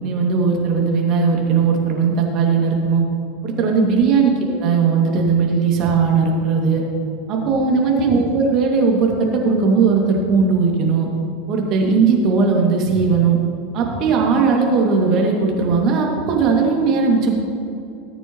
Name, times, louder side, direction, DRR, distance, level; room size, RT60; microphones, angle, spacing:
voice 1, 0.0-3.1 3.4-6.8 7.3-11.1 11.5-13.4 13.7-17.3, right 5 dB, 45° right, 0 dB, 2.5 m, -18 dB
18.0 x 8.8 x 3.2 m, 2.6 s
hypercardioid pair, 85°, 0 cm